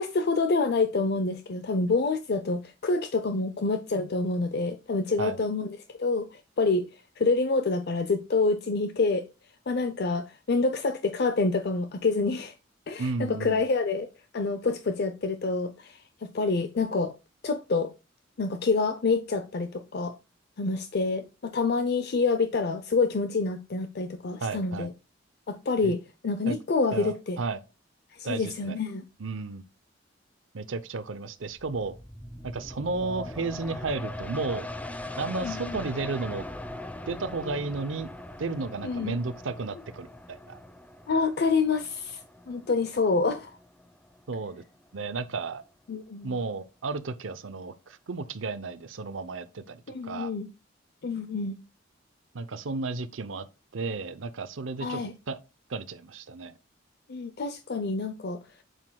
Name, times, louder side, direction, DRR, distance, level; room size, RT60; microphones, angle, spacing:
voice 1, 0.0-9.2 9.7-12.5 12.9-17.1 17.4-17.9 18.4-20.2 20.6-24.9 25.5-27.4 28.1-29.0 35.4-35.8 38.8-39.2 41.1-42.2 42.5-43.6 45.9-46.4 49.9-50.5 51.0-51.6 54.8-55.1 57.1-58.4, left 3 dB, 55° left, 0.6 m, -27 dB
voice 2, 13.0-13.6 24.4-24.9 25.8-25.9 26.5-26.6 26.9-27.6 28.2-28.8 29.2-29.6 30.5-31.9 32.4-34.7 35.2-36.4 37.1-38.1 38.4-40.6 44.3-44.6 44.9-45.6 46.2-50.3 52.3-53.5 53.7-55.4 55.7-56.5, right 3 dB, 80° right, 0.6 m, -33 dB
sound 1, 31.5-44.7 45.2-45.3, left 1 dB, 10° left, 0.5 m, -41 dB
8.1 x 7.4 x 2.2 m
head